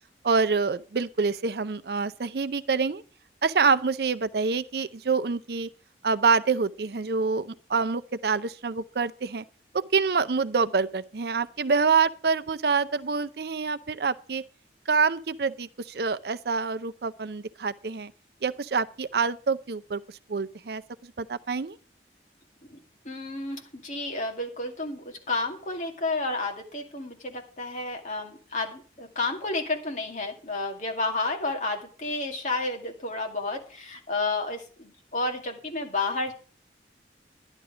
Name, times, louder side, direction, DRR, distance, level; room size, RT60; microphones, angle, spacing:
voice 1, 0.2-3.0 3.4-5.7 6.0-9.4 9.7-14.4 14.9-18.1 18.4-20.0 20.3-21.8, right 5 dB, 60° right, 0.5 m, -26 dB
voice 2, 23.0-36.3, left 2 dB, 45° left, 2.3 m, -31 dB
11.5 x 10.5 x 5.0 m
head